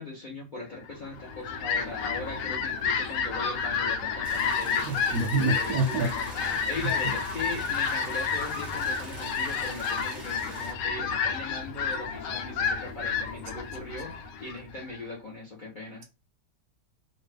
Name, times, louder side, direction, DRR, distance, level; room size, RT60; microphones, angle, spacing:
voice 1, 0.0-16.0, left 2 dB, 40° left, 0.7 m, -39 dB
Fowl, 1.1-15.0, left 6 dB, 85° left, 1.2 m, -30 dB
sound 1, 4.2-10.7, right 1 dB, 20° right, 0.8 m, -44 dB
voice 2, 4.9-6.1 7.0-7.1, right 2 dB, 70° right, 1.0 m, -27 dB
2.8 x 2.3 x 3.3 m
omnidirectional pair, 1.9 m